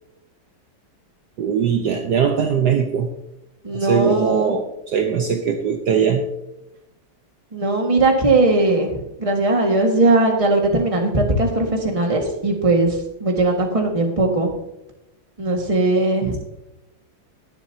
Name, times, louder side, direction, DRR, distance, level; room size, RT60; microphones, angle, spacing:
voice 1, 1.4-3.1 3.7-6.3 16.2-16.4, right 7 dB, 60° right, 4 dB, 1.3 m, -20 dB
voice 2, 3.6-4.5 7.5-14.5 15.4-16.4, right 2 dB, 20° right, 2 dB, 1.6 m, -19 dB
21.0 x 7.3 x 2.8 m, 0.89 s
omnidirectional pair, 2.2 m